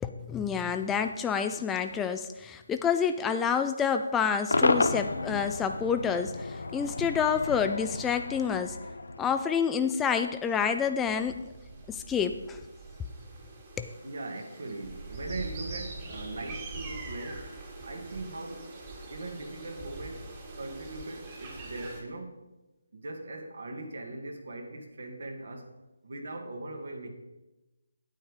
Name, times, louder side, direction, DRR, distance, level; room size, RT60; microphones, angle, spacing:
voice 1, 0.0-8.8 9.2-11.5 11.9-12.6 13.8-13.9, left 7 dB, 10° left, 7 dB, 0.3 m, -28 dB
Cheering / Crowd / Fireworks, 4.5-9.8, left 3 dB, 75° left, 0.9 m, -31 dB
sound 1, 9.9-22.0, right 3 dB, 25° right, 1.9 m, -43 dB
voice 2, 14.0-17.5 17.8-18.7 19.1-20.3 20.6-22.4 22.9-25.7 26.0-27.1, right 2 dB, 60° right, 4 dB, 1.9 m, -40 dB
9.2 x 8.3 x 4.8 m, 1.0 s
figure-of-eight pair, 155°, 0 cm